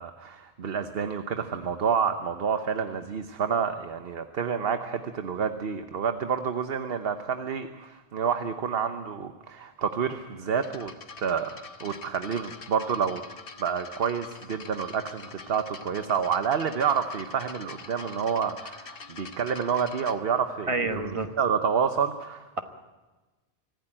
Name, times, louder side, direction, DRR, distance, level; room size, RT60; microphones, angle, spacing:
voice 1, 0.0-10.9 11.2-13.2 13.6-20.7 21.4-22.6, right 7 dB, 70° right, 8 dB, 1.2 m, -28 dB
sound 1, 10.6-20.2, left 4 dB, 65° left, 1.4 m, -45 dB
voice 2, 20.7-21.3, right 3 dB, 30° right, 7 dB, 1.3 m, -28 dB
25.0 x 15.5 x 8.8 m, 1.2 s
omnidirectional pair, 1.0 m